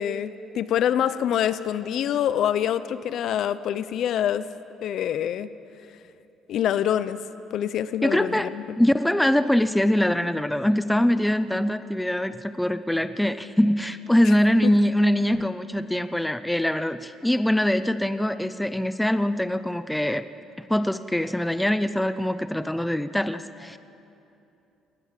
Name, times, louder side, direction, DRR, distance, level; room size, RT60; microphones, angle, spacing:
voice 1, 0.0-4.5 4.8-5.5 6.5-7.2 7.5-8.8 14.3-14.4 14.6-14.7, left 10 dB, 60° left, 14 dB, 0.7 m, -25 dB
voice 2, 8.0-8.5 8.8-20.3 20.6-23.8, left 1 dB, 5° left, 13 dB, 0.6 m, -23 dB
20.0 x 19.0 x 7.6 m, 2.8 s
cardioid pair, 125°, 0 cm